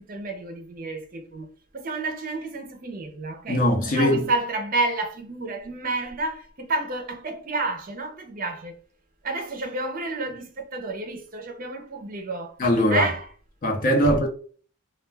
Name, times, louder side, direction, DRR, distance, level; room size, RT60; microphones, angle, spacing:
voice 1, 0.0-1.5 1.7-8.8 9.2-12.6 12.9-13.3 14.0-14.1, right 2 dB, 40° right, 0.5 m, -30 dB
voice 2, 3.5-4.3 12.6-13.1 13.6-14.3, equal, 40° left, 0.5 m, -21 dB
2.3 x 2.2 x 3.2 m
head